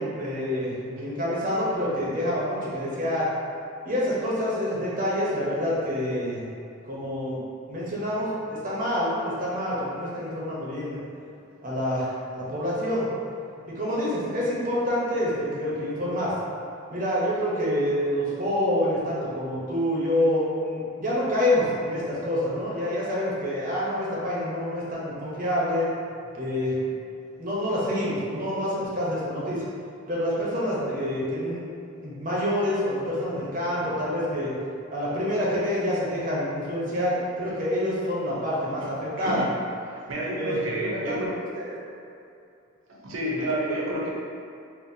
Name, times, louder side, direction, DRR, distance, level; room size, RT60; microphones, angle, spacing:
voice 1, 0.0-3.3 3.8-6.5 6.8-7.4 7.7-11.0 11.6-13.1 13.8-16.3 16.9-25.9 26.4-26.8 27.4-29.6 30.1-31.6 32.0-34.5 34.9-39.4 40.3-41.1 41.5-41.8, left 1 dB, 40° right, -7 dB, 0.7 m, -27 dB
voice 2, 39.9-41.4 43.0-44.1, right 1 dB, 80° right, -4 dB, 0.6 m, -30 dB
4.0 x 2.1 x 2.6 m, 2.6 s
head